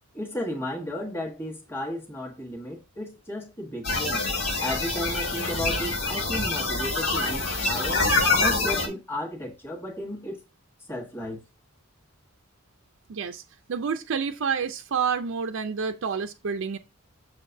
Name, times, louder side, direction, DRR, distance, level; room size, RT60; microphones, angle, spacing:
voice 1, 0.1-4.2 4.6-10.4 10.9-11.4, left 1 dB, 10° left, 1.3 m, -34 dB
sound 1, 3.8-8.9, left 3 dB, 80° left, 2.3 m, -25 dB
voice 2, 13.1-13.4 13.7-16.8, right 6 dB, 60° right, 0.5 m, -28 dB
6.5 x 6.4 x 2.7 m
head